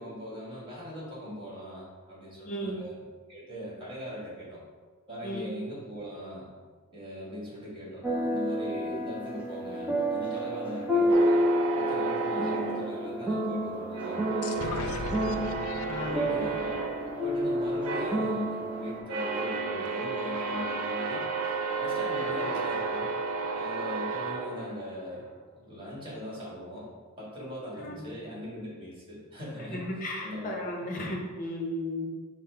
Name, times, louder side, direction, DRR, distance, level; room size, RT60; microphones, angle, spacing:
voice 1, 0.0-3.0 3.3-4.6 5.1-6.5 6.9-11.3 11.8-15.4 16.0-16.8 17.2-21.2 21.8-23.0 23.5-25.3 25.5-26.9 27.2-29.9 30.2-30.9, equal, 20° right, -6 dB, 1.5 m, -40 dB
voice 2, 2.4-2.8 5.2-5.5 15.9-16.3 22.3-22.4 27.8-28.1 29.7-32.1, left 1 dB, 40° left, 0 dB, 0.7 m, -35 dB
sound 1, 8.0-19.0, equal, 5° right, 0.5 m, -30 dB
sound 2, 11.1-13.6 13.9-25.2, right 4 dB, 75° right, 0.4 m, -33 dB
sound 3, 14.4-18.1, left 4 dB, 75° left, 0.3 m, -40 dB
5.4 x 2.0 x 4.4 m, 1.5 s
head